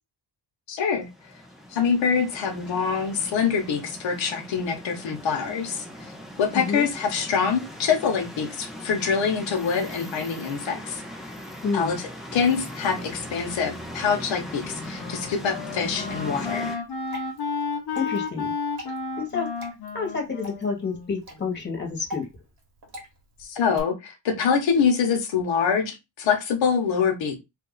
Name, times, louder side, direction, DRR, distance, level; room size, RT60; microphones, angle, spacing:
voice 1, 0.7-1.3 1.7-6.1 6.4-11.0 11.7-16.8 23.4-27.4, left 6 dB, 85° left, 2 dB, 1.1 m, -25 dB
sound 1, 1.0-16.8, left 1 dB, ahead, 0.9 m, -39 dB
voice 2, 6.5-6.9 11.6-12.0 17.9-18.5 19.2-19.5 19.9-22.2, left 5 dB, 25° left, 1 dB, 1.6 m, -29 dB
Wind instrument woodwind instrument, 14.5-21.6, left 4 dB, 60° left, 1.0 m, -33 dB
Water / Drip, 16.8-23.8, left 1 dB, 50° right, 1.5 m, -43 dB
2.9 x 2.7 x 4.0 m, 0.23 s
cardioid pair, 125°, 45 cm